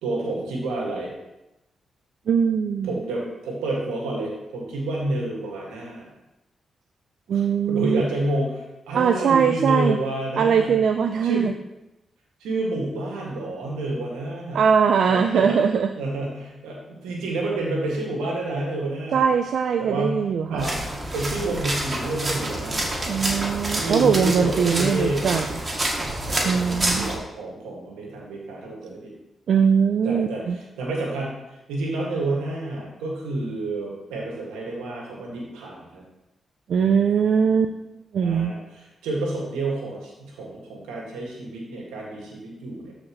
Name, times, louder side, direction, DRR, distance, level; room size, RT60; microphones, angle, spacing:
voice 1, 0.0-1.1 2.8-6.1 7.3-10.7 11.2-11.5 12.4-14.7 15.1-15.6 16.0-19.3 19.8-20.2 20.5-20.8 21.1-22.9 23.7-25.3 26.3-29.1 30.0-36.0 38.2-42.9, right 2 dB, 90° right, -2 dB, 2.0 m, -29 dB
voice 2, 2.3-3.0 7.3-8.0 8.9-10.0 10.4-11.5 14.5-15.9 19.1-20.7 23.1-25.5 26.4-27.1 29.5-30.6 36.7-37.7 38.1-38.5, right 6 dB, 70° right, 8 dB, 0.4 m, -21 dB
sound 1, 20.6-27.2, right 1 dB, 35° right, 2.1 m, -28 dB
12.5 x 4.9 x 3.1 m, 0.95 s
supercardioid pair, 50°, 0 cm